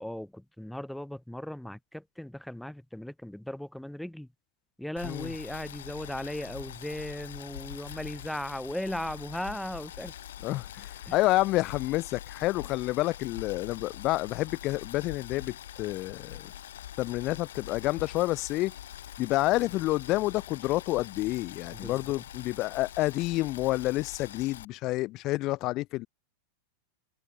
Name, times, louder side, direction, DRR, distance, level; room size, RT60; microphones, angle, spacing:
voice 1, 0.0-4.3 4.8-10.1 11.1-11.2 21.7-22.1, left 1 dB, ahead, 0.8 m, -37 dB
Boiling, 5.0-24.7, left 11 dB, 85° left, 2.6 m, -44 dB
voice 2, 10.4-16.5 17.0-18.7 19.2-26.1, left 18 dB, 40° left, 0.5 m, -29 dB
supercardioid pair, 135°, 0 cm